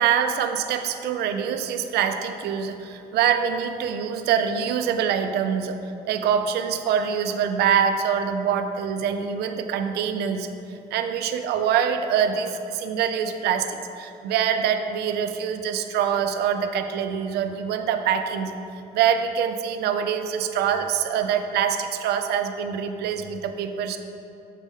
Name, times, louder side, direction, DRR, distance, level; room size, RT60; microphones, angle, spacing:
voice 1, 0.0-10.5 10.9-18.5 18.9-24.0, right 8 dB, 75° right, 7 dB, 0.5 m, -24 dB
7.3 x 3.6 x 5.4 m, 2.9 s
cardioid pair, 110°, 17 cm